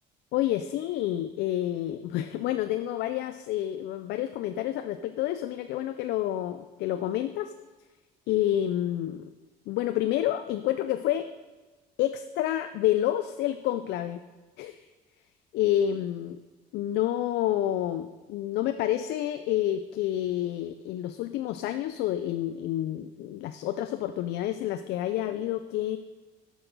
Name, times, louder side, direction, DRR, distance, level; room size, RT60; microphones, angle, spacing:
voice 1, 0.3-7.5 8.3-9.3 9.7-11.3 12.0-14.2 14.6-14.9 15.5-16.4 16.7-26.0, left 12 dB, 80° left, 9 dB, 0.4 m, -29 dB
8.7 x 6.3 x 5.1 m, 1.2 s
cardioid pair, 110°, 17 cm